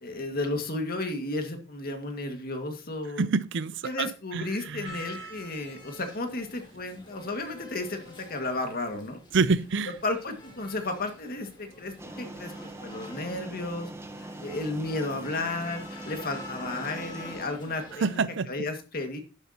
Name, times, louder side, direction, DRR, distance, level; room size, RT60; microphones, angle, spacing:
voice 1, 0.0-3.3 3.8-9.2 10.0-12.5 12.8-13.9 14.2-19.2, left 2 dB, 45° left, 1.9 m, -33 dB
voice 2, 3.2-5.0 9.3-9.9 18.0-18.5, right 4 dB, 60° right, 0.5 m, -27 dB
sound 1, 4.8-18.2, left 1 dB, 20° left, 2.5 m, -47 dB
sound 2, 12.0-17.5, right 2 dB, 15° right, 0.9 m, -42 dB
11.5 x 10.5 x 2.9 m
head